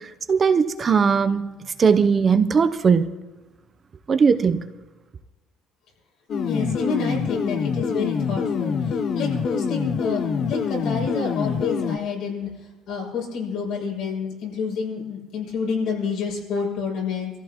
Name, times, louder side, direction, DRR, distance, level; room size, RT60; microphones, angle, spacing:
voice 1, 0.3-1.5 1.8-3.1 4.1-4.6, right 6 dB, 30° right, 0.6 m, -18 dB
sound 1, 6.3-12.0, left 6 dB, 40° left, 0.6 m, -25 dB
voice 2, 6.4-12.5 12.9-17.3, left 5 dB, 70° left, 6.1 m, -29 dB
25.0 x 14.5 x 2.9 m
cardioid pair, 150°, 0 cm